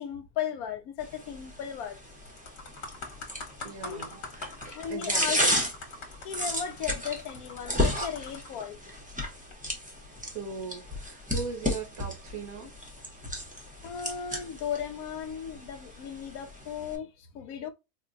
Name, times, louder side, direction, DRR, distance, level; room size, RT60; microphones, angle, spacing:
voice 1, 0.0-2.0 3.8-4.0 4.6-5.4 6.2-9.0 13.8-17.7, left 8 dB, 75° left, 1.1 m, -36 dB
sound 1, 1.0-17.0, left 1 dB, 5° right, 0.7 m, -34 dB
sound 2, 1.6-1.9 2.3-8.7 9.3-9.5, left 3 dB, 50° left, 1.2 m, -43 dB
voice 2, 3.6-4.6 4.9-5.3 10.3-12.7, right 4 dB, 70° right, 1.5 m, -39 dB
4.4 x 2.2 x 2.5 m
omnidirectional pair, 1.6 m